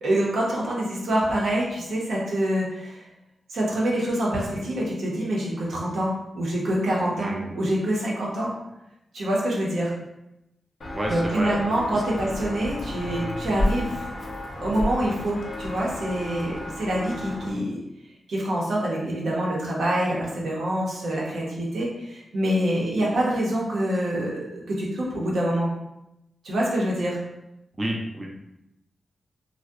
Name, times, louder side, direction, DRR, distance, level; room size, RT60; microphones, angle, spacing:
voice 1, 0.0-3.0 3.5-8.5 9.1-9.9 11.1-14.1 14.6-17.8 18.3-25.7 26.4-27.2, right 1 dB, 80° right, -4 dB, 0.7 m, -26 dB
voice 2, 7.2-7.5 10.9-12.0 27.8-28.3, right 1 dB, 25° right, -1 dB, 0.3 m, -30 dB
Walk footsteps, 10.8-17.5, left 1 dB, 50° left, 0.5 m, -32 dB
2.6 x 2.1 x 2.3 m, 0.89 s
cardioid pair, 80°, 0 cm